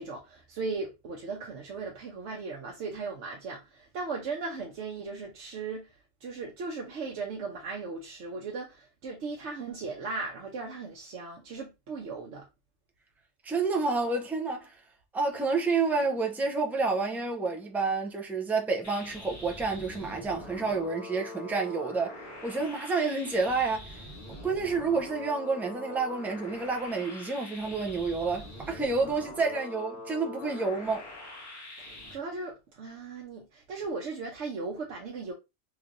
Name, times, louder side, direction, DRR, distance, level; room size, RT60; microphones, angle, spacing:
voice 1, 0.0-12.5 31.8-35.3, right 4 dB, 85° right, 1.0 m, -37 dB
voice 2, 13.4-14.8 15.1-22.2 22.4-24.0 24.4-31.0, right 4 dB, 5° right, 0.3 m, -29 dB
sound 1, 18.8-32.1, left 1 dB, 15° left, 1.3 m, -44 dB
3.3 x 3.2 x 2.5 m
omnidirectional pair, 1.2 m